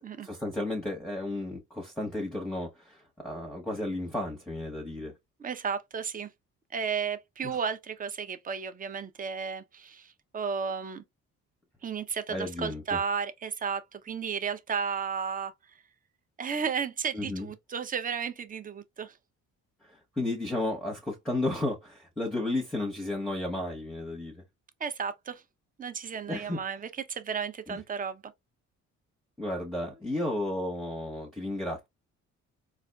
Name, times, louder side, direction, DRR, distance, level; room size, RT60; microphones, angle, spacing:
voice 1, 0.2-5.1 7.4-7.6 12.3-13.0 17.1-17.5 19.8-24.4 26.3-26.6 27.7-27.8 29.4-31.9, left 1 dB, ahead, 0.9 m, -33 dB
voice 2, 5.4-6.3 6.7-11.0 11.8-15.5 16.4-19.2 24.8-25.4 25.8-26.8 27.1-28.2, right 6 dB, 30° right, 0.6 m, -33 dB
4.1 x 2.4 x 2.3 m
cardioid pair, 90°, 30 cm